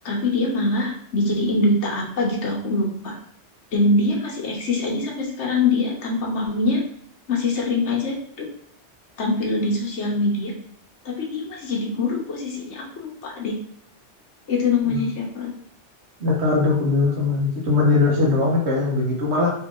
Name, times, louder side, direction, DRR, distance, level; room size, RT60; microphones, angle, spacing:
voice 1, 0.0-3.2 3.7-6.8 7.3-8.5 9.2-10.5 11.0-13.6 14.5-15.5, left 2 dB, 75° left, 0 dB, 1.3 m, -23 dB
voice 2, 16.2-19.5, left 3 dB, 70° right, -2 dB, 1.4 m, -20 dB
4.3 x 2.9 x 3.7 m, 0.66 s
omnidirectional pair, 1.2 m